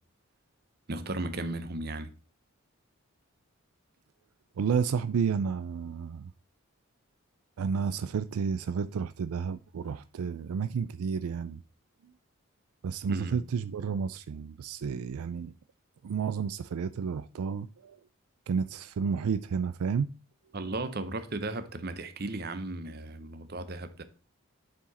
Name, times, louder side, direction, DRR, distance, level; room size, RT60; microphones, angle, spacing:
voice 1, 0.9-2.1 13.1-13.4 20.5-24.0, right 2 dB, 45° right, 0.8 m, -35 dB
voice 2, 4.6-6.3 7.6-11.6 12.8-15.5 16.0-18.0 18.5-20.1 20.6-20.7, right 6 dB, 85° right, 0.4 m, -31 dB
8.6 x 4.8 x 4.1 m
head